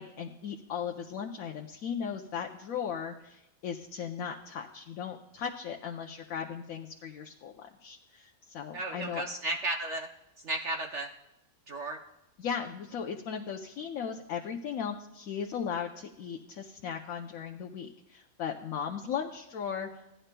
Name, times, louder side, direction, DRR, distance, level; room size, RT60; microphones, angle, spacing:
voice 1, 0.0-9.2 12.4-20.2, left 7 dB, 70° left, 2 dB, 1.1 m, -37 dB
voice 2, 8.7-10.1 10.4-11.1 11.7-12.0, right 2 dB, 60° right, 1 dB, 1.0 m, -34 dB
16.5 x 11.5 x 2.2 m, 0.88 s
omnidirectional pair, 1.6 m